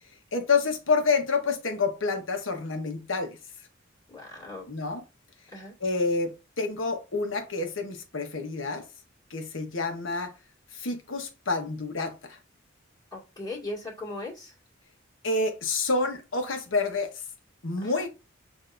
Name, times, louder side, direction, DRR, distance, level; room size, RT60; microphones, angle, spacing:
voice 1, 0.3-3.4 4.7-5.0 5.8-8.8 9.3-10.3 10.7-12.4 15.2-17.1 17.6-18.1, left 3 dB, 70° left, 1.1 m, -28 dB
voice 2, 4.1-4.7 5.5-5.7 13.1-14.5 17.8-18.1, left 2 dB, 20° left, 2.1 m, -38 dB
6.7 x 2.8 x 2.5 m
head